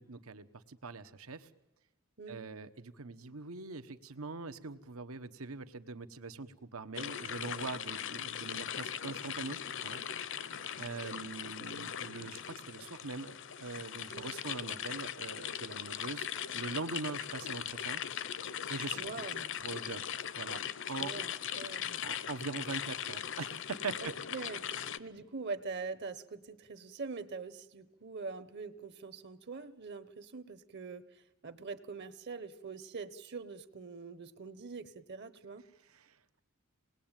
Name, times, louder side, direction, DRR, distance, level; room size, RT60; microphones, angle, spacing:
voice 1, 0.0-1.5 2.3-12.4 12.7-18.0 18.7-19.0 19.6-20.0 20.4-21.1 22.0-24.1 35.9-36.2, right 3 dB, 85° right, 11 dB, 1.2 m, -42 dB
sound 1, 6.9-25.0, left 9 dB, 60° left, 0.8 m, -40 dB
voice 2, 19.0-19.5 21.0-22.0 24.0-35.6, right 4 dB, 50° right, 13 dB, 1.1 m, -44 dB
27.5 x 20.0 x 9.0 m, 1.0 s
head